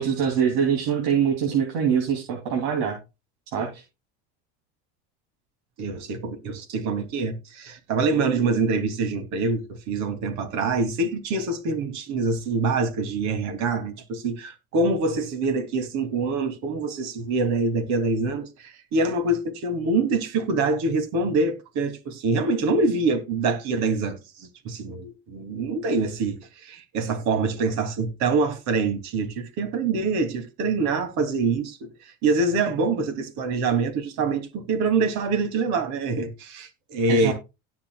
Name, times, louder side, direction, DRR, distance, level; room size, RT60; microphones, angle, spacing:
voice 1, 0.0-3.0 3.5-3.8 37.1-37.3, right 7 dB, 85° right, 3.0 m, -24 dB
voice 2, 5.8-37.3, right 3 dB, 70° right, 2.9 m, -25 dB
17.0 x 6.1 x 2.4 m
supercardioid pair, 110°, 30 cm